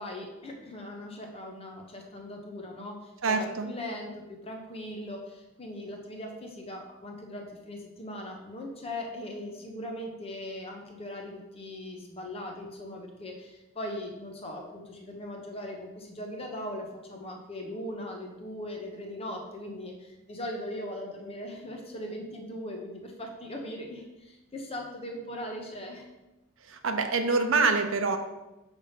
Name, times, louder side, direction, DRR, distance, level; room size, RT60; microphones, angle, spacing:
voice 1, 0.0-26.1, left 1 dB, 30° left, 2 dB, 1.0 m, -39 dB
voice 2, 3.2-3.7 26.7-28.2, right 4 dB, 80° right, 7 dB, 0.6 m, -25 dB
5.7 x 3.5 x 5.7 m, 1.0 s
head